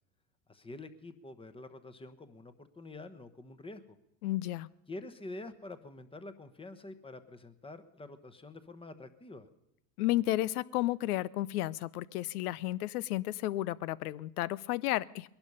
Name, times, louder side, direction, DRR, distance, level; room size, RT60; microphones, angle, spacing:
voice 1, 0.5-4.0 4.9-9.5, left 2 dB, 10° left, 11 dB, 1.0 m, -47 dB
voice 2, 4.2-4.7 10.0-15.3, left 16 dB, 85° left, 21 dB, 0.6 m, -32 dB
20.0 x 11.5 x 5.5 m, 0.82 s
supercardioid pair, 105°, 44 cm